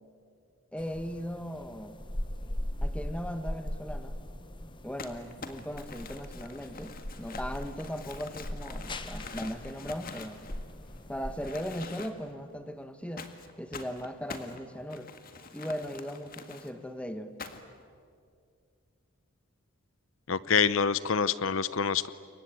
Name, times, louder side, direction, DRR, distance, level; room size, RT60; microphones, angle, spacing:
voice 1, 0.7-2.0 2.8-4.2 4.8-10.4 11.1-13.3 13.6-15.1 15.5-17.3, equal, 5° left, 9 dB, 1.3 m, -38 dB
sound 1, 0.8-11.9, left 1 dB, 25° left, 1.2 m, -40 dB
Crumpling crinkling, 5.0-11.0 11.4-12.4 13.2-16.7 17.4-17.8, left 4 dB, 45° left, 1.8 m, -45 dB
voice 2, 20.3-22.1, left 6 dB, 70° left, 16 dB, 0.7 m, -26 dB
28.0 x 23.0 x 9.0 m, 2.2 s
head